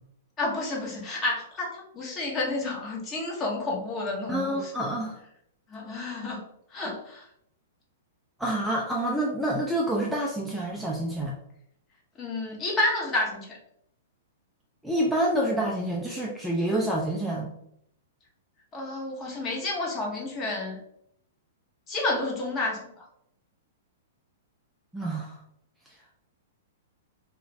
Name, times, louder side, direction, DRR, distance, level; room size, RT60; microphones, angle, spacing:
voice 1, 0.4-4.7 5.7-6.4 6.7-7.2 12.2-13.6 18.7-20.8 21.9-23.0, left 2 dB, 25° left, -1 dB, 0.9 m, -30 dB
voice 2, 4.3-5.2 8.4-11.4 14.8-17.5 24.9-25.4, right 1 dB, ahead, -3 dB, 0.4 m, -27 dB
2.4 x 2.4 x 3.1 m, 0.73 s
hypercardioid pair, 125°, 0 cm